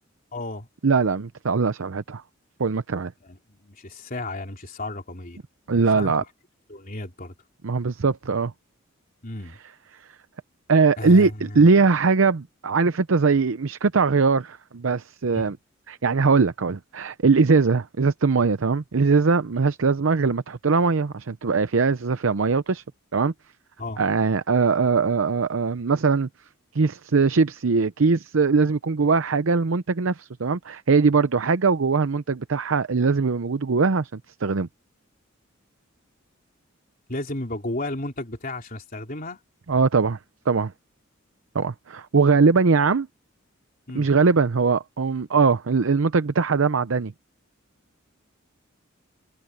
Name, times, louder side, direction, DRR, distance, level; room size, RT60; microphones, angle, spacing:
voice 1, 0.3-0.7 3.2-5.4 6.0-6.1 6.7-7.4 9.2-9.6 11.0-11.7 15.3-15.5 23.8-24.0 37.1-39.4 43.9-44.1, left 2 dB, 45° left, 3.5 m, -33 dB
voice 2, 0.8-2.2 2.6-3.1 5.7-6.2 7.6-8.5 10.7-15.6 15.9-22.8 23.1-23.3 24.0-26.3 26.7-34.7 39.7-40.2 40.5-40.7 41.5-43.1 43.9-47.1, right 4 dB, 70° right, 0.6 m, -21 dB
head